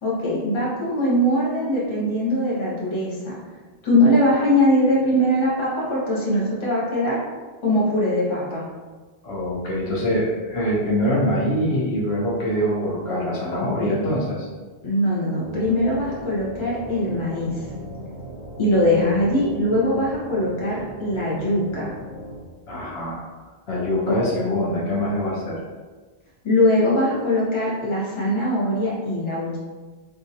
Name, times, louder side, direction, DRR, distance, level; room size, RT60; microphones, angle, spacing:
voice 1, 0.0-3.4 3.8-7.2 7.6-8.7 13.8-14.0 14.8-17.7 18.6-21.9 24.1-24.2 26.4-29.6, left 1 dB, 30° left, -6 dB, 0.9 m, -21 dB
voice 2, 9.2-14.5 22.7-23.2 23.7-25.6, equal, 70° left, -5 dB, 1.0 m, -24 dB
sound 1, 15.4-22.4, equal, 25° right, 0.3 m, -38 dB
3.5 x 2.5 x 2.7 m, 1.3 s
omnidirectional pair, 1.1 m